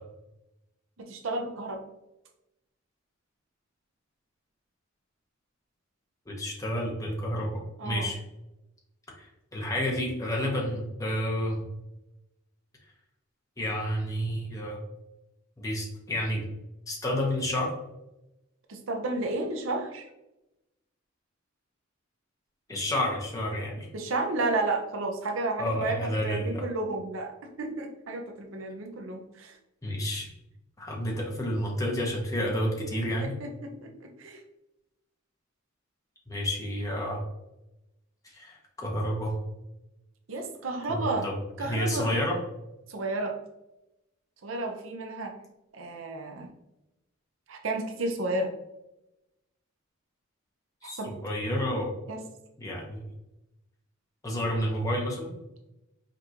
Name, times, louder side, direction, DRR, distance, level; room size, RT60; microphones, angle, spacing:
voice 1, 1.0-1.8 7.8-8.1 18.7-20.1 23.9-27.3 27.6-29.6 33.2-34.4 40.3-41.3 41.6-42.2 42.9-43.4 44.4-45.3 45.7-46.5 47.5-48.5 50.8-51.1 52.1-52.3, right 2 dB, 70° right, 3 dB, 0.6 m, -32 dB
voice 2, 6.3-8.2 9.2-11.6 13.6-14.8 15.6-16.4 16.9-17.7 22.7-23.9 25.6-26.6 29.8-30.3 30.8-33.4 36.3-37.2 38.2-39.4 40.9-42.4 50.8-51.9 52.6-53.0 54.2-55.3, equal, 15° left, -2 dB, 0.9 m, -30 dB
5.1 x 2.5 x 2.9 m, 0.94 s
head